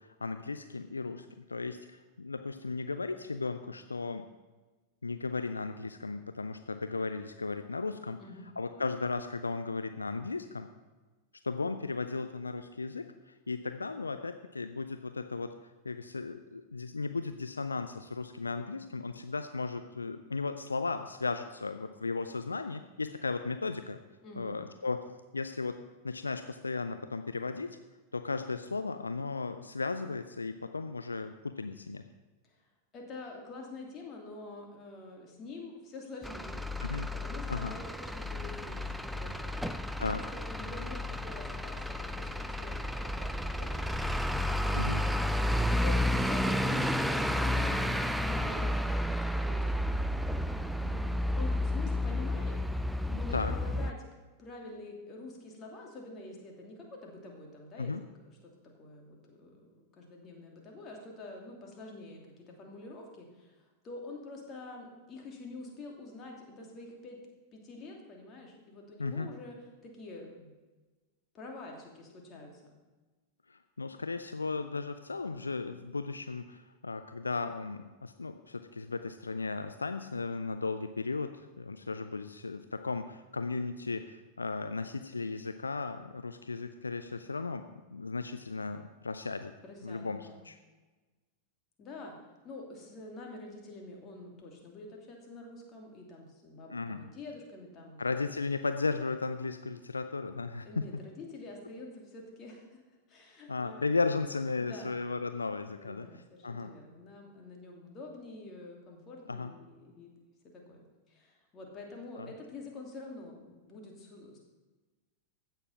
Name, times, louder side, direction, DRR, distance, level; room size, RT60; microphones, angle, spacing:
voice 1, 0.0-4.3 5.0-8.2 8.6-10.7 11.4-15.5 15.8-24.0 24.4-25.0 25.3-25.8 26.0-27.8 28.1-32.0 36.8-37.1 37.5-37.7 40.0-40.2 44.7-45.0 53.3-53.5 57.8-58.0 69.0-69.3 73.5-89.5 89.8-90.6 96.7-97.0 98.0-100.8 103.5-106.7 109.3-109.5 112.2-112.3, left 4 dB, 80° left, 9 dB, 0.5 m, -35 dB
voice 2, 24.2-24.5 32.4-32.6 32.9-45.3 45.7-49.0 49.4-49.9 50.7-52.6 53.1-54.0 54.4-58.1 58.4-67.2 67.5-69.6 69.8-70.5 71.3-72.7 89.6-90.4 91.8-92.2 92.4-98.1 100.6-102.8 103.1-103.9 104.6-105.0 105.8-110.1 110.5-114.4, left 2 dB, 30° left, 0 dB, 2.9 m, -47 dB
Truck / Idling, 36.2-53.9, left 1 dB, ahead, 0.5 m, -31 dB
15.5 x 6.9 x 5.7 m, 1.2 s
figure-of-eight pair, 90°, 0 cm